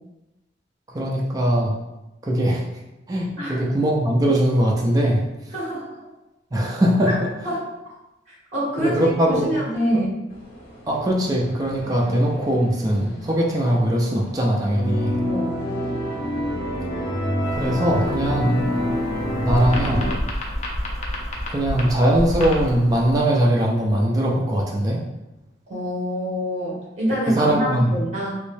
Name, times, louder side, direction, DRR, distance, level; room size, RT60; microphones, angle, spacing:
voice 1, 0.9-1.8 2.2-2.6 3.1-5.2 6.5-7.1 8.8-9.5 9.9-10.0 10.9-15.2 17.5-18.6 19.4-20.2 21.5-25.0 27.3-28.0, right 1 dB, 20° right, -2 dB, 0.4 m, -21 dB
voice 2, 5.5-6.0 7.1-7.2 7.4-7.7 8.5-10.2 11.8-12.1 15.3-15.6 25.7-28.4, equal, 40° right, -6 dB, 1.2 m, -26 dB
sound 1, 10.3-20.2, equal, 55° left, 1.0 m, -28 dB
sound 2, 17.4-23.2, left 1 dB, 40° left, 0.6 m, -30 dB
3.1 x 2.6 x 3.2 m, 0.99 s
head